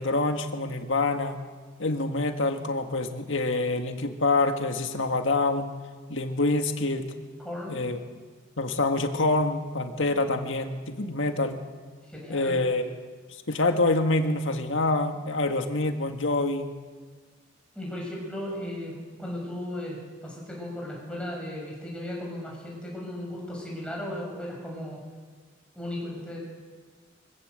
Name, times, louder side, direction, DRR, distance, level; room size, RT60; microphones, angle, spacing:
voice 1, 0.0-1.4 1.8-5.7 6.1-7.1 7.7-8.0 8.6-11.6 12.3-12.9 13.5-16.7, left 2 dB, 70° left, 5 dB, 1.8 m, -26 dB
voice 2, 7.4-7.8 12.1-12.6 17.7-25.0 25.7-26.4, left 1 dB, 5° left, -3 dB, 6.7 m, -36 dB
24.0 x 16.0 x 8.1 m, 1.5 s
head